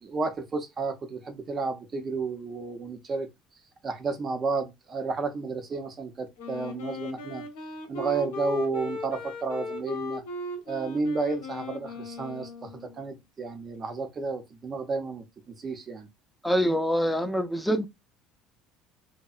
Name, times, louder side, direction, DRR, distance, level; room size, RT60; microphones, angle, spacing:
voice 1, 0.0-3.3 3.8-7.4 7.9-10.2 10.7-16.1, right 4 dB, 35° right, 0.7 m, -32 dB
Wind instrument woodwind instrument, 6.4-13.0, left 2 dB, 85° left, 0.7 m, -37 dB
voice 2, 16.4-17.9, equal, 5° left, 0.4 m, -25 dB
2.7 x 2.1 x 2.4 m
supercardioid pair, 90°, 0 cm